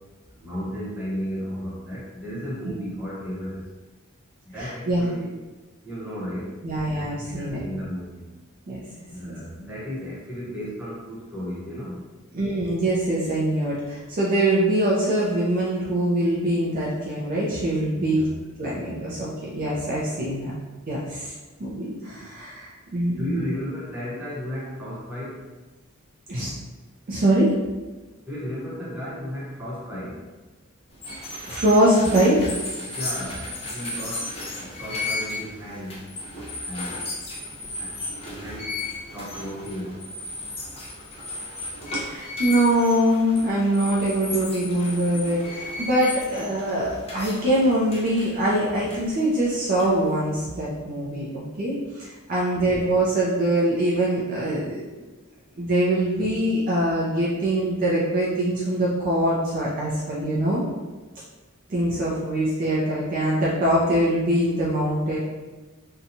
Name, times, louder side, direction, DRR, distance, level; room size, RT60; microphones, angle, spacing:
voice 1, 0.4-3.6 4.5-5.3 5.8-6.5 7.3-8.3 9.1-12.0 17.9-18.3 22.1-22.3 23.2-25.4 28.3-30.1 32.8-34.3 34.6-36.0 36.6-37.0 37.8-37.9 38.2-38.7 39.1-39.9, equal, 10° right, -9 dB, 0.9 m, -34 dB
voice 2, 4.6-5.1 6.6-7.6 8.7-8.8 9.2-9.4 12.3-18.2 18.6-20.5 20.9-21.3 21.6-23.4 26.3-26.5 27.1-27.5 31.5-32.4 42.0-54.8 55.6-60.6 61.7-65.2, right 1 dB, 40° right, -6 dB, 0.4 m, -23 dB
sound 1, 30.9-50.2, left 2 dB, 30° left, 0.6 m, -35 dB
2.7 x 2.2 x 2.6 m, 1.2 s
head